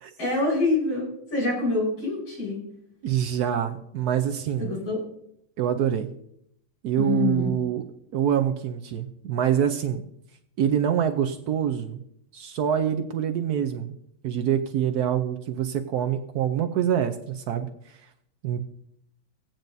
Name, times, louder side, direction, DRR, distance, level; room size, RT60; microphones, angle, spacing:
voice 1, 0.2-2.6 4.6-5.0 6.9-7.5, left 3 dB, 65° left, -4 dB, 5.5 m, -26 dB
voice 2, 3.0-4.8 5.6-6.1 6.8-7.8 8.1-10.0 10.6-12.0 12.3-13.9 14.2-17.9 18.4-18.7, right 9 dB, 75° right, 8 dB, 0.9 m, -25 dB
16.0 x 9.0 x 2.6 m, 0.72 s
omnidirectional pair, 2.3 m